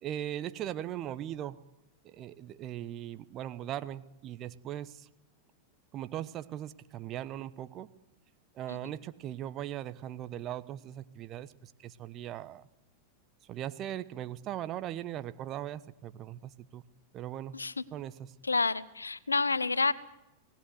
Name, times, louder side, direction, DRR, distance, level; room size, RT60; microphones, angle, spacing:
voice 1, 0.0-1.6 2.0-5.1 5.9-7.9 8.5-12.7 13.5-16.8 17.1-17.5 17.9-18.1, right 11 dB, 35° right, 14 dB, 1.1 m, -39 dB
voice 2, 17.5-17.8 18.4-19.9, left 4 dB, 80° left, 19 dB, 0.8 m, -29 dB
30.0 x 18.5 x 8.1 m, 0.95 s
figure-of-eight pair, 90°, 0 cm